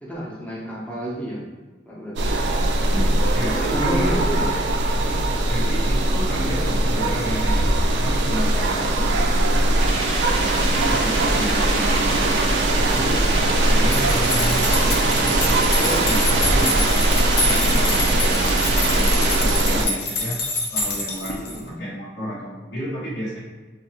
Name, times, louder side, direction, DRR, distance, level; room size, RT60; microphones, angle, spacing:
voice 1, 0.0-1.4 1.8-2.3 3.5-4.5 21.4-21.8 22.2-22.3, equal, 10° left, -5 dB, 0.7 m, -30 dB
sound 1, 2.2-19.9, right 2 dB, 85° right, 0.4 m, -20 dB
voice 2, 2.8-4.2 5.0-10.0 10.4-13.3 13.6-20.4 20.7-21.4 21.6-23.4, equal, 90° left, -7 dB, 1.0 m, -31 dB
sound 2, 9.7-19.5, right 1 dB, 35° right, 0.6 m, -29 dB
sound 3, 13.9-21.6, left 2 dB, 65° left, 0.6 m, -27 dB
2.7 x 2.5 x 4.2 m, 1.4 s
head